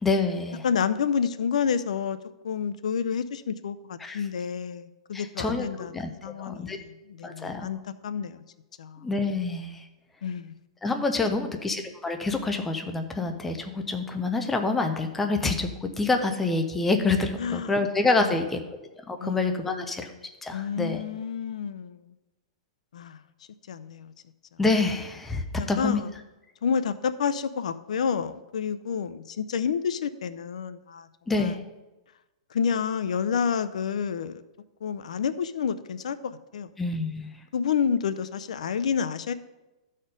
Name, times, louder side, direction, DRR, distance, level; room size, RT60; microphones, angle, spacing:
voice 1, 0.0-0.7 4.0-4.2 5.1-6.8 7.2-7.7 9.0-9.9 10.8-18.6 19.1-20.1 20.4-21.0 24.6-26.0 31.3-31.6 36.8-37.3, left 3 dB, 5° left, 5 dB, 0.4 m, -27 dB
voice 2, 0.6-2.2 2.4-8.4 8.8-9.0 10.2-10.5 11.2-11.3 17.4-17.8 18.2-18.4 19.2-19.9 20.5-22.1 22.9-23.2 23.7-24.1 25.6-26.1 26.6-31.1 31.4-31.5 32.5-34.4 34.8-36.7 37.5-39.3, left 7 dB, 90° left, 13 dB, 0.5 m, -29 dB
12.5 x 4.3 x 5.1 m, 1.0 s
supercardioid pair, 180°, 4 cm